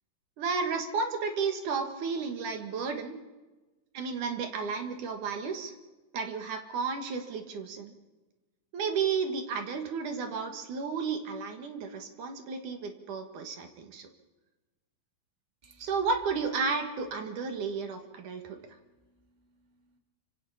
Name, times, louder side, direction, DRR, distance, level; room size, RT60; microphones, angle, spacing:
voice 1, 0.4-3.2 3.9-5.7 6.1-7.9 8.7-14.1 15.8-18.6, right 5 dB, 75° right, 5 dB, 3.3 m, -32 dB
voice 2, 15.6-15.9 18.2-20.0, right 3 dB, 15° right, 3 dB, 2.6 m, -65 dB
29.0 x 26.5 x 4.3 m, 1.2 s
omnidirectional pair, 3.6 m